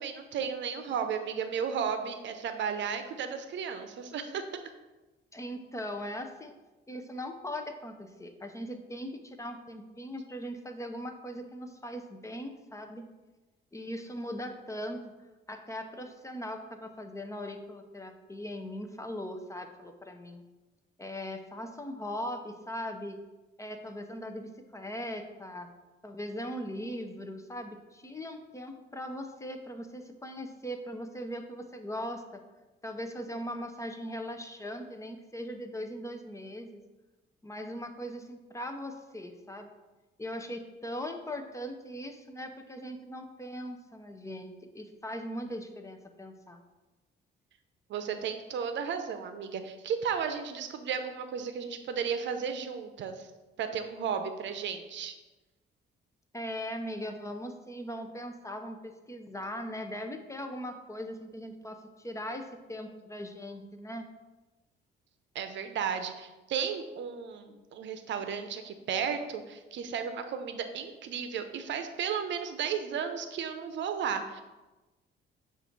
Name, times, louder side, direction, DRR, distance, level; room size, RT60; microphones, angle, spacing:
voice 1, 0.0-4.4 47.9-53.3 53.6-55.1 65.3-74.4, right 7 dB, 65° right, 8 dB, 0.6 m, -34 dB
voice 2, 5.3-6.5 6.9-13.1 13.7-15.1 15.5-20.4 21.0-23.2 23.6-25.7 26.0-32.4 32.8-36.8 37.4-39.7 40.2-46.6 56.3-64.1, equal, 15° left, 5 dB, 0.6 m, -39 dB
7.2 x 2.6 x 5.1 m, 1.1 s
cardioid pair, 90°, 20 cm